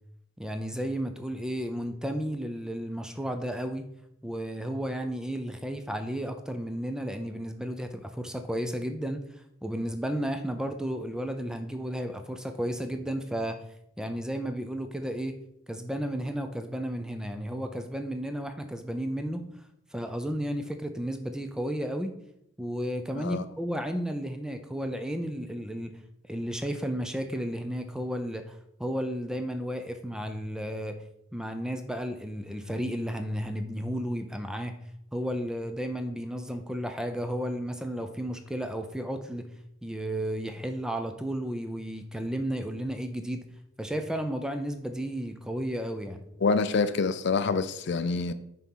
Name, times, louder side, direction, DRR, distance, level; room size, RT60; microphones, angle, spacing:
voice 1, 0.4-3.9 4.2-9.2 9.6-13.6 14.0-15.4 15.7-19.5 19.9-22.1 22.6-25.9 26.3-31.0 31.3-34.7 35.1-39.5 39.8-43.5 43.8-46.2, equal, 5° right, 0.5 m, -33 dB
voice 2, 46.4-48.3, left 4 dB, 55° left, 0.4 m, -26 dB
6.1 x 4.3 x 5.4 m
head